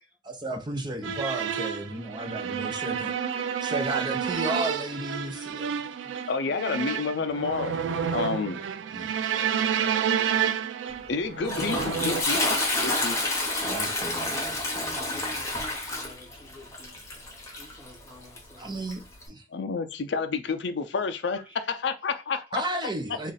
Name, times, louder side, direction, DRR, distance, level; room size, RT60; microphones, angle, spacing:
voice 1, 0.2-3.1 3.6-5.9 8.9-9.3 13.6-15.4 18.6-19.4 22.5-23.3, right 1 dB, 25° right, 0.5 m, -34 dB
sound 1, 1.0-12.2, right 8 dB, 85° right, 0.4 m, -30 dB
voice 2, 5.2-5.8 14.0-14.5 15.0-16.9 17.6-18.8 21.3-22.0, left 1 dB, 10° right, 1.6 m, -48 dB
voice 3, 6.3-7.8 8.1-8.6 11.1-13.2 19.5-22.6, left 4 dB, 65° left, 0.4 m, -30 dB
Toilet flush, 10.9-19.3, left 2 dB, 15° left, 0.9 m, -30 dB
3.1 x 2.5 x 4.0 m
head